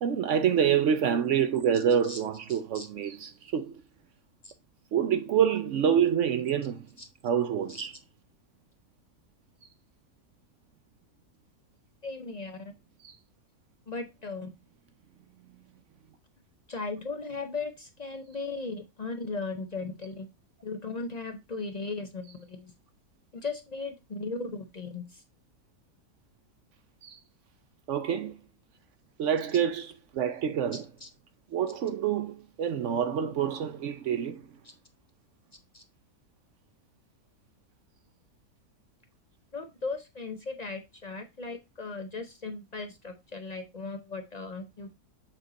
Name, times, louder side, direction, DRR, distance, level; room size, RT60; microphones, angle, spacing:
voice 1, 0.0-3.8 4.9-6.8 7.2-7.9 13.0-13.1 27.0-27.2 27.9-28.4 29.2-30.8 31.5-34.4, right 8 dB, 65° right, 0.8 m, -27 dB
voice 2, 1.7-2.2 2.5-2.9 4.4-4.5 7.0-7.1 7.7-7.8 12.0-12.7 13.9-14.5 16.7-20.3 20.6-22.7 23.3-25.2 30.7-31.1 34.6-34.7 35.7-35.8 39.5-44.9, left 3 dB, 55° left, 0.4 m, -37 dB
7.3 x 4.0 x 3.9 m
omnidirectional pair, 1.6 m